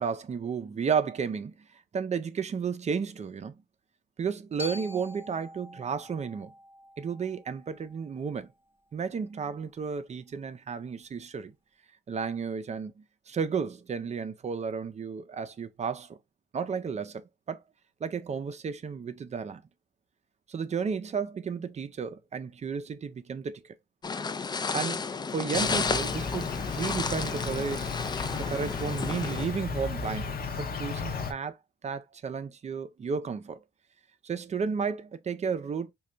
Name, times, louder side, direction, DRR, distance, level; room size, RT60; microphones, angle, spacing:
voice 1, 0.0-3.5 4.2-6.5 7.0-8.5 8.9-11.5 12.1-12.9 13.3-16.2 16.5-17.6 18.0-19.6 20.5-23.7 24.7-27.9 28.3-31.6 31.8-33.6 34.2-35.9, right 6 dB, 35° right, 0.5 m, -33 dB
Glockenspiel, 4.6-8.7, left 1 dB, 10° right, 1.0 m, -45 dB
sound 1, 24.0-29.5, left 5 dB, 20° left, 0.3 m, -32 dB
Insect, 25.5-31.3, left 5 dB, 50° left, 0.7 m, -34 dB
3.2 x 2.3 x 3.8 m
cardioid pair, 90°, 20 cm